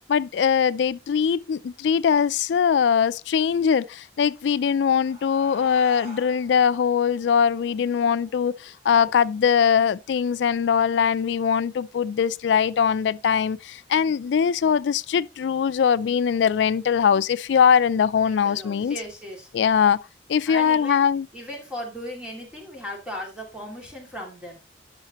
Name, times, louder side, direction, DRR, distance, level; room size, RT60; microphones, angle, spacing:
voice 1, 0.1-18.9 19.5-20.0 20.3-21.3, left 7 dB, 75° left, 0.3 m, -21 dB
sound 1, 4.3-9.5, right 1 dB, 40° right, 2.3 m, -48 dB
voice 2, 18.2-19.5 20.4-24.6, equal, 5° right, 2.3 m, -37 dB
9.7 x 5.7 x 2.9 m
head